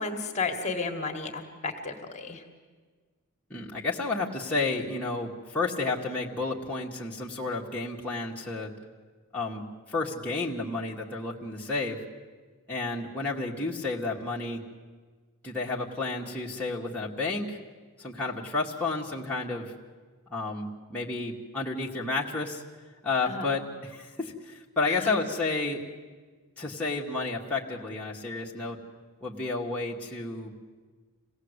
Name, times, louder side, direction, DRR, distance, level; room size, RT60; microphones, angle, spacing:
voice 1, 0.0-2.4 23.3-23.5 24.9-25.1, left 4 dB, 30° left, 4 dB, 1.8 m, -33 dB
voice 2, 3.5-8.7 9.3-12.0 12.7-14.6 15.4-17.6 18.0-19.7 20.3-22.6 23.0-25.8 26.6-28.8 29.2-30.5, left 3 dB, 5° left, -5 dB, 1.7 m, -31 dB
27.0 x 18.0 x 8.2 m, 1.5 s
head